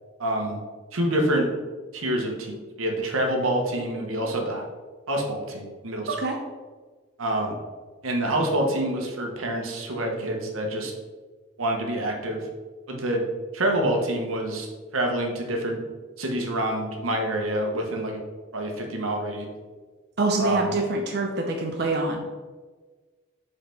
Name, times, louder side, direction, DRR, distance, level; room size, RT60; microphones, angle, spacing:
voice 1, 0.2-0.6 0.9-1.5 1.9-4.6 5.1-6.2 7.2-7.6 8.0-10.9 11.6-12.5 12.9-13.2 13.5-15.8 16.2-18.2 18.5-19.5 20.4-20.7, right 1 dB, 90° right, 1 dB, 1.1 m, -27 dB
voice 2, 20.2-22.2, right 2 dB, 50° right, 1 dB, 0.6 m, -25 dB
5.3 x 4.1 x 4.5 m, 1.4 s
head